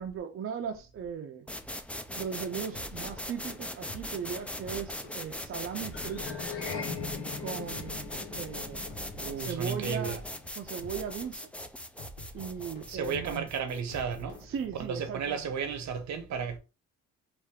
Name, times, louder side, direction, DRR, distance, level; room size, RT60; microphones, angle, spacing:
voice 1, 0.0-1.5 2.2-6.3 7.4-8.1 8.3-8.9 9.4-10.2 10.6-11.5 12.3-13.5 14.5-15.4, right 7 dB, 45° right, 0.5 m, -37 dB
sound 1, 1.5-15.2, left 1 dB, 5° left, 0.3 m, -41 dB
sound 2, 2.7-15.1, equal, 85° left, 1.2 m, -49 dB
sound 3, 5.9-10.5, left 5 dB, 45° left, 1.0 m, -40 dB
voice 2, 9.2-10.2 12.9-14.5 14.7-16.6, right 6 dB, 70° right, 0.8 m, -33 dB
3.3 x 2.5 x 3.5 m
cardioid pair, 90°, 30 cm